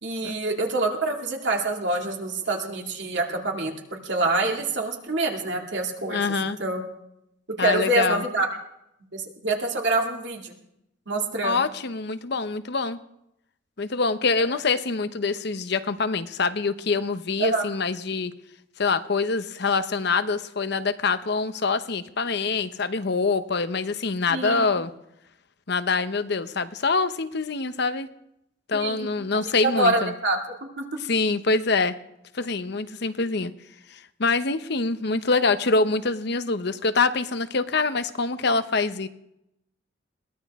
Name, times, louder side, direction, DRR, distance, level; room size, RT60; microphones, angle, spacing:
voice 1, 0.0-6.2 6.6-6.9 7.5-8.5 9.1-10.5 11.1-11.6 14.5-14.6 17.4-17.6 24.3-24.7 28.7-29.1 29.4-30.4 30.8-30.9, right 2 dB, 60° right, 1 dB, 2.5 m, -26 dB
voice 2, 6.1-6.6 7.6-8.2 11.4-13.0 13.8-18.3 18.8-24.9 25.7-28.1 28.7-30.1 31.1-31.9 32.3-33.5 33.9-39.1, left 4 dB, 60° left, 11 dB, 0.9 m, -25 dB
22.0 x 17.0 x 3.7 m, 0.82 s
head